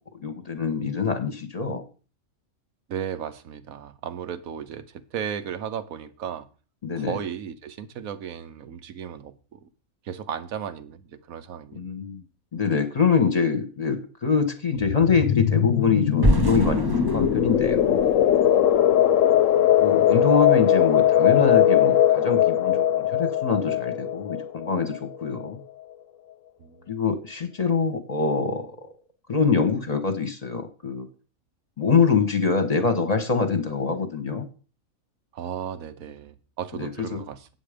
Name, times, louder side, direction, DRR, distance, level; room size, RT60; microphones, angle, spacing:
voice 1, 0.2-1.8 6.8-7.2 11.7-12.2 12.5-16.8 17.1-18.1 19.8-25.6 26.9-28.8 29.3-31.1 31.8-34.5 36.8-37.2, left 5 dB, 30° left, 1.1 m, -24 dB
voice 2, 2.9-6.5 6.9-9.7 10.0-11.8 20.1-20.3 26.6-26.9 35.3-37.5, right 8 dB, 85° right, 1.3 m, -35 dB
sound 1, 14.8-25.3, left 10 dB, 70° left, 1.0 m, -20 dB
sound 2, 16.2-19.2, right 1 dB, 25° right, 0.5 m, -26 dB
8.2 x 8.1 x 5.0 m
omnidirectional pair, 1.4 m